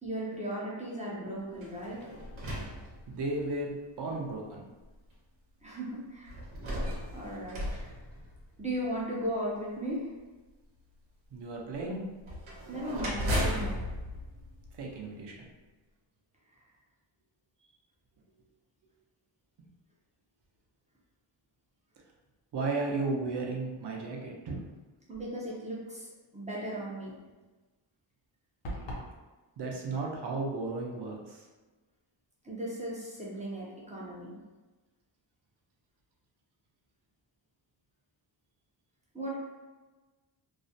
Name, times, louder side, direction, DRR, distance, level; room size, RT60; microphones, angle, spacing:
voice 1, 0.0-2.0 5.6-6.4 7.1-7.9 8.6-10.1 12.7-13.8 25.1-27.2 32.4-34.3 39.1-39.3, right 1 dB, 15° right, -6 dB, 0.4 m, -36 dB
sound 1, 1.5-3.6 4.3-4.4 6.3-8.8 12.2-15.3, equal, 90° right, 0.8 m, -36 dB
voice 2, 2.0-2.8 3.1-4.7 7.5-7.6 11.3-12.0 14.7-15.5 22.5-24.7 29.6-31.5, right 3 dB, 60° right, -1 dB, 0.6 m, -35 dB
sound 2, 28.6-29.1, equal, 65° left, 0.7 m, -37 dB
2.4 x 2.0 x 2.6 m, 1.2 s
wide cardioid pair, 155°, 47 cm